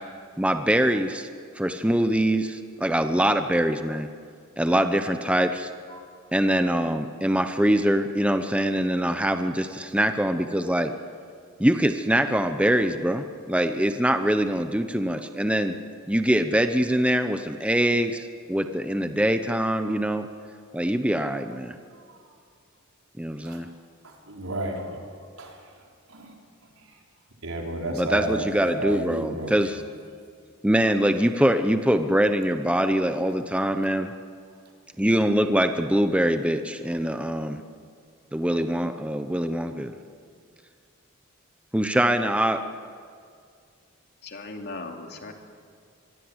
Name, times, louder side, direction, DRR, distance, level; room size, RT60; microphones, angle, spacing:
voice 1, 0.4-1.3 1.6-4.1 4.6-5.7 6.3-10.9 11.6-15.7 16.1-20.3 20.7-21.7 23.2-23.7 27.9-29.8 30.6-34.1 35.0-37.6 38.3-39.9 41.7-42.6, right 1 dB, 5° right, 8 dB, 0.9 m, -23 dB
voice 2, 24.0-25.0 25.4-25.5 26.1-26.3 27.4-29.5 35.4-35.5, right 1 dB, 85° right, 0 dB, 4.8 m, -32 dB
voice 3, 44.2-45.3, left 3 dB, 55° left, 3 dB, 2.8 m, -37 dB
25.5 x 22.0 x 8.1 m, 2.2 s
head